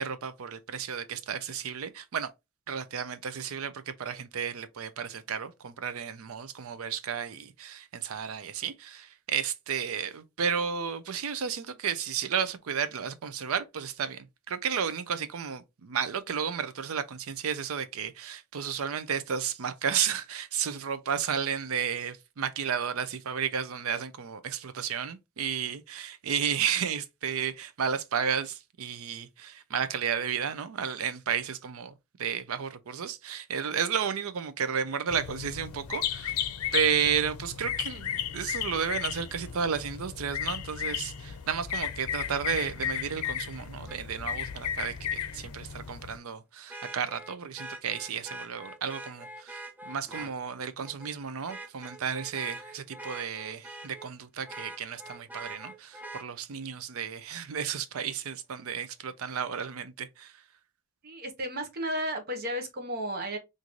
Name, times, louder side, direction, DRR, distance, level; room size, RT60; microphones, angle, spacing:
voice 1, 0.0-2.3 2.7-36.3 36.7-60.3, right 7 dB, 70° right, 0.5 m, -32 dB
sound 1, 35.1-46.2, left 9 dB, 85° left, 0.5 m, -34 dB
Vehicle horn car horn honking, 43.9-44.0 46.7-50.3 50.8-51.1 51.5-54.1 54.5-56.2 58.1-58.2, right 2 dB, 5° right, 0.5 m, -43 dB
voice 2, 61.0-63.4, equal, 45° right, 0.9 m, -33 dB
3.8 x 2.6 x 2.9 m
head